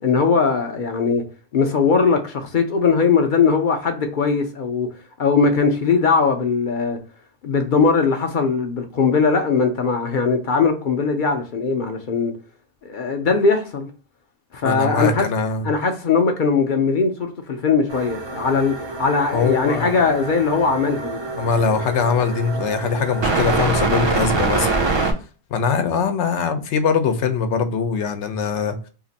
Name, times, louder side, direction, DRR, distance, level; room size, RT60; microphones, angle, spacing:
voice 1, 0.0-1.2 1.5-4.9 5.2-7.0 7.4-12.3 12.8-13.9 14.5-15.3 15.6-21.2, left 5 dB, 55° left, 0.6 m, -20 dB
voice 2, 14.6-15.7 19.3-20.0 21.4-24.7 25.5-28.9, left 5 dB, 80° left, 0.9 m, -22 dB
sound 1, 17.9-25.1, right 3 dB, 40° right, 0.4 m, -25 dB
2.8 x 2.5 x 3.9 m
omnidirectional pair, 1.2 m